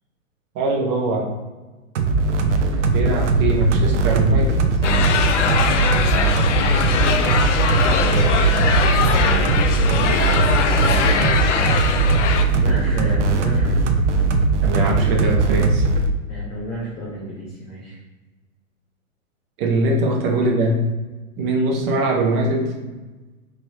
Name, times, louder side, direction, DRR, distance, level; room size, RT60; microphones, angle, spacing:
voice 1, 0.5-1.3 2.8-4.6 14.6-15.8 19.6-20.8 21.4-22.7, right 2 dB, 30° right, 1 dB, 0.9 m, -21 dB
sound 1, 2.0-16.1, right 3 dB, 60° right, 0.7 m, -19 dB
sound 2, 4.8-12.4, left 6 dB, 60° left, 0.6 m, -22 dB
voice 2, 8.0-9.7 10.0-11.2 12.6-13.8 16.3-18.0, equal, 15° left, -5 dB, 0.4 m, -32 dB
4.8 x 3.0 x 2.7 m, 1.2 s
figure-of-eight pair, 110°, 41 cm